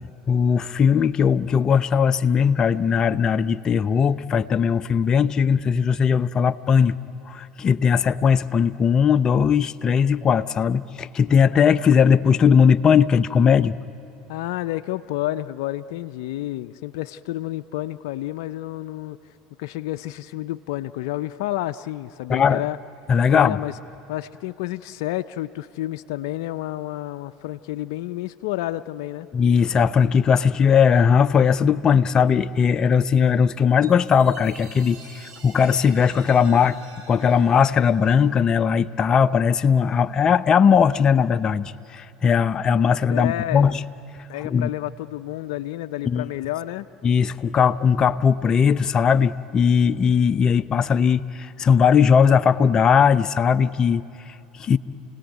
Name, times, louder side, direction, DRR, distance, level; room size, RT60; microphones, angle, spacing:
voice 1, 0.3-7.0 7.3-13.8 22.3-22.7 23.1-23.6 29.3-36.8 37.1-43.8 44.4-44.7 46.0-46.3 47.0-54.8, left 7 dB, 35° left, 0.7 m, -19 dB
voice 2, 14.3-19.2 19.6-22.8 23.3-23.7 24.1-29.3 43.1-43.8 44.3-46.9, left 15 dB, 75° left, 0.5 m, -30 dB
Chime, 33.8-38.5, right 3 dB, 65° right, 6.8 m, -47 dB
29.0 x 18.0 x 9.3 m
hypercardioid pair, 85°, 2 cm